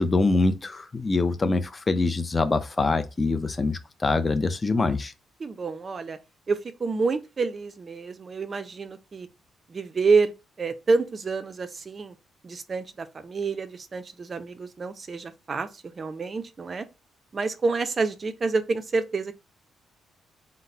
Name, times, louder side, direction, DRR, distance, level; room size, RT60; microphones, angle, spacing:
voice 1, 0.0-5.1, left 3 dB, 25° left, 0.5 m, -24 dB
voice 2, 5.4-6.2 6.5-9.3 9.7-10.3 10.6-12.1 12.4-16.9 17.3-19.3, right 4 dB, 35° right, 0.5 m, -28 dB
4.0 x 2.1 x 4.3 m
cardioid pair, 130°, 0 cm